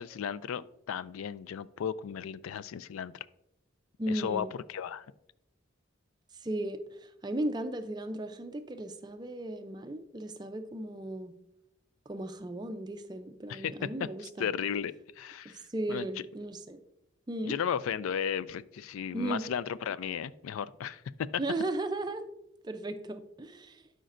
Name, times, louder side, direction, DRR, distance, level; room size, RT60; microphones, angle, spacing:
voice 1, 0.0-3.1 4.1-5.1 13.5-13.7 14.4-15.6 15.9-16.1 17.4-21.3, left 8 dB, 90° left, 17 dB, 0.3 m, -35 dB
voice 2, 4.0-4.5 6.3-11.3 12.1-14.5 15.4-16.8 17.3-17.5 19.1-19.5 21.4-22.2 22.6-23.9, right 1 dB, 20° right, 9 dB, 0.4 m, -36 dB
12.0 x 5.0 x 2.5 m, 0.86 s
head